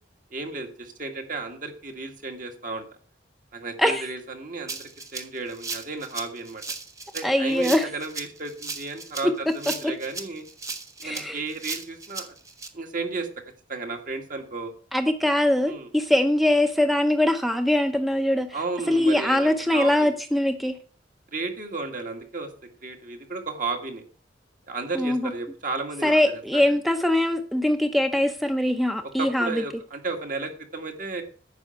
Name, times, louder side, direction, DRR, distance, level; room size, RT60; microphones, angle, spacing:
voice 1, 0.3-2.9 3.5-6.6 7.1-10.4 11.0-12.3 12.7-13.3 13.7-14.7 15.7-15.9 18.5-20.1 21.3-22.5 22.8-24.0 24.7-26.6 29.0-31.2, right 3 dB, 50° right, 4 dB, 1.8 m, -33 dB
Rattle (instrument), 4.7-12.7, right 3 dB, 20° right, 1.1 m, -36 dB
voice 2, 7.2-7.9 9.2-9.5 9.8-9.9 11.0-11.4 14.9-18.6 18.9-20.8 24.9-25.3 26.0-29.6, left 1 dB, ahead, 6 dB, 0.6 m, -22 dB
9.6 x 5.7 x 7.8 m, 0.41 s
head